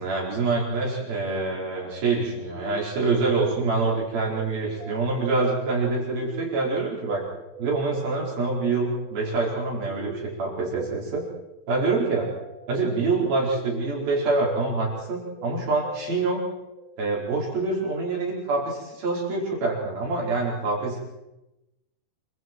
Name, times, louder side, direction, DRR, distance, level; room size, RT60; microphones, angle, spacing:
voice 1, 0.0-7.2 7.6-11.2 11.7-12.3 12.7-16.4 17.0-21.0, right 3 dB, 50° right, -3 dB, 6.6 m, -26 dB
sound 1, 2.5-17.3, right 4 dB, 35° right, 7.7 m, -42 dB
28.0 x 25.0 x 4.7 m, 0.96 s
omnidirectional pair, 5.4 m